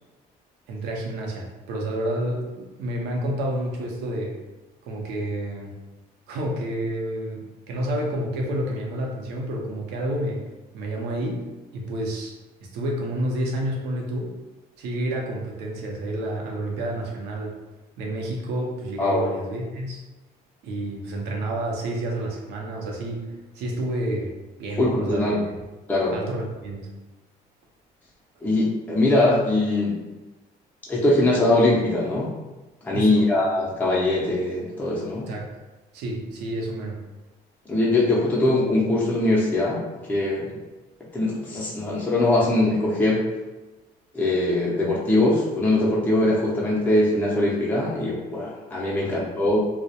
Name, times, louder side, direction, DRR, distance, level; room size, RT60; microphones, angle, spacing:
voice 1, 0.7-4.4 4.8-5.8 6.3-10.5 10.7-11.5 11.7-12.3 12.6-14.3 14.8-17.6 18.0-20.0 20.6-24.3 24.6-25.6 26.1-26.9 32.9-33.3 35.3-35.5 35.9-37.0 49.0-49.2, right 1 dB, 85° right, -1 dB, 0.6 m, -29 dB
voice 2, 24.8-25.4 25.9-26.2 28.4-30.0 30.9-32.3 32.8-35.3 37.7-40.5 41.1-43.2 44.1-49.7, left 2 dB, 10° left, -6 dB, 0.5 m, -22 dB
2.2 x 2.0 x 2.7 m, 1.1 s
cardioid pair, 110°, 17 cm